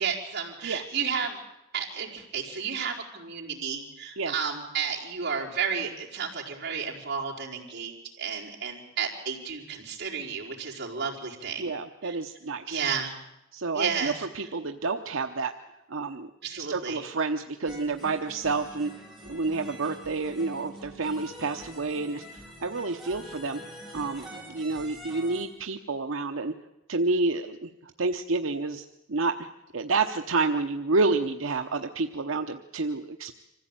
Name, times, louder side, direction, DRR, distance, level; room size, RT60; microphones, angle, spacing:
voice 1, 0.0-1.4 1.7-11.7 12.0-12.2 12.7-13.1 13.7-14.5 16.4-17.0, right 6 dB, 55° right, -3 dB, 4.5 m, -32 dB
voice 2, 0.6-1.0 4.2-4.3 11.6-12.8 13.5-15.5 15.9-16.3 16.7-18.9 19.3-23.6 23.9-26.5 26.9-29.5 29.7-33.3, right 3 dB, 85° right, 5 dB, 0.9 m, -29 dB
sound 1, 17.7-25.4, equal, ahead, 4.4 m, -45 dB
25.0 x 15.5 x 9.0 m, 0.90 s
head